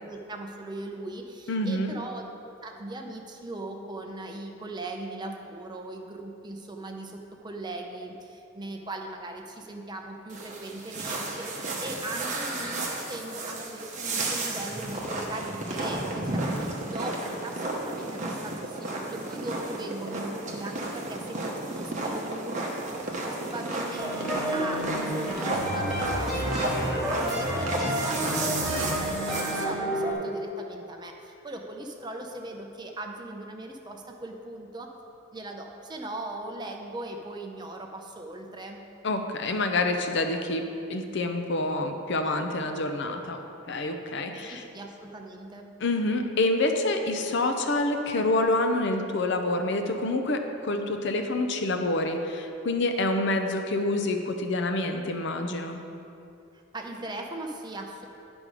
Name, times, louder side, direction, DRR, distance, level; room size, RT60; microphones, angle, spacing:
voice 1, 0.0-2.3 2.6-34.9 35.3-38.8 44.3-45.7 56.7-58.1, right 2 dB, 20° right, 2 dB, 0.6 m, -39 dB
voice 2, 1.5-1.9 39.0-44.6 45.8-55.8, left 2 dB, 55° left, 5 dB, 0.6 m, -27 dB
sound 1, 10.3-29.6, right 2 dB, 35° right, 1.0 m, -33 dB
sound 2, 23.9-30.1, equal, ahead, 1.9 m, -30 dB
10.0 x 5.2 x 4.8 m, 2.7 s
head